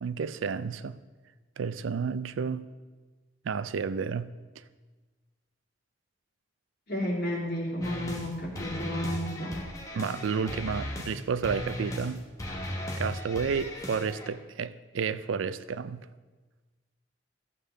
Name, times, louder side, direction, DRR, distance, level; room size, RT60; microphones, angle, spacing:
voice 1, 0.0-1.0 1.6-2.6 3.4-4.3 4.6-4.7 9.9-12.2 13.0-16.1, right 6 dB, 90° right, 0.4 m, -31 dB
voice 2, 6.9-9.6, left 1 dB, 55° left, 2.7 m, -32 dB
sound 1, 7.8-8.3 8.5-11.2 11.4-12.1 12.4-14.3, equal, 15° left, 1.0 m, -36 dB
12.5 x 8.0 x 3.3 m
head